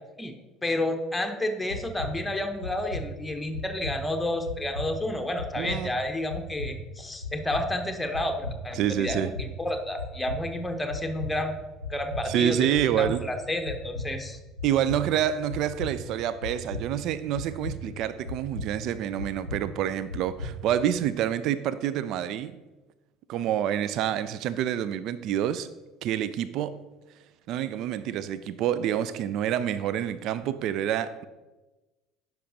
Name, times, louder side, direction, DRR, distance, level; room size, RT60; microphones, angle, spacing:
voice 1, 0.6-14.4, left 1 dB, 10° left, 5 dB, 0.8 m, -31 dB
sound 1, 1.6-21.0, left 1 dB, 90° left, 0.5 m, -38 dB
voice 2, 5.6-5.9 8.8-9.3 12.3-13.2 14.6-22.6 23.3-25.7 26.0-26.8 27.5-31.2, right 10 dB, 55° right, 16 dB, 0.3 m, -27 dB
9.9 x 6.0 x 2.7 m, 1.1 s
figure-of-eight pair, 60°, 0 cm